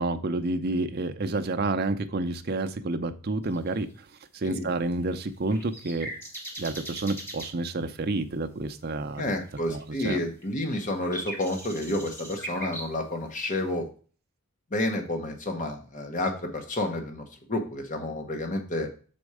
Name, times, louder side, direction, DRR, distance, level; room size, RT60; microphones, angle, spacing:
voice 1, 0.0-3.9 4.3-6.1 6.6-9.3 9.7-10.2, right 2 dB, 45° right, 7 dB, 0.6 m, -29 dB
sound 1, 3.4-3.8 4.9-7.5 9.1-9.2 9.5-9.8 10.1-12.9, right 1 dB, 10° left, 1.4 m, -39 dB
voice 2, 9.2-13.9 14.7-18.9, left 1 dB, 35° left, 3 dB, 1.1 m, -30 dB
6.3 x 4.3 x 4.8 m, 0.39 s
head